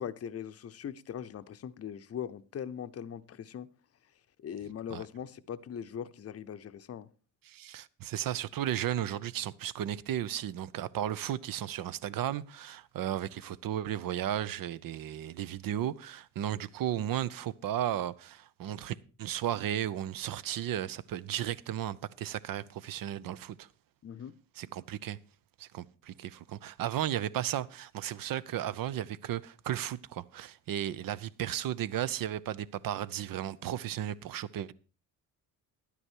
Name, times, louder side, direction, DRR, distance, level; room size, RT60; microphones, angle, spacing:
voice 1, 0.0-3.7 4.4-7.1 24.0-24.3, left 8 dB, 40° left, 0.7 m, -40 dB
voice 2, 7.4-23.7 24.6-25.2 25.6-34.7, right 11 dB, 60° right, 0.7 m, -34 dB
11.0 x 9.8 x 4.5 m
cardioid pair, 100°, 39 cm